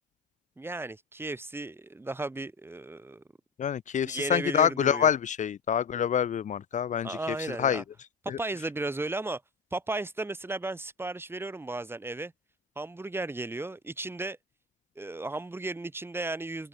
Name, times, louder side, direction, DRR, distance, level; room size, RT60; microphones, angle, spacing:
voice 1, 0.6-3.2 4.0-5.1 7.0-7.8 8.2-9.4 9.7-12.3 12.8-14.4 15.0-16.7, right 2 dB, 15° right, 6.2 m, -35 dB
voice 2, 3.6-7.8 8.3-8.4, left 8 dB, 45° left, 1.8 m, -27 dB
open air
cardioid pair, 110°, 17 cm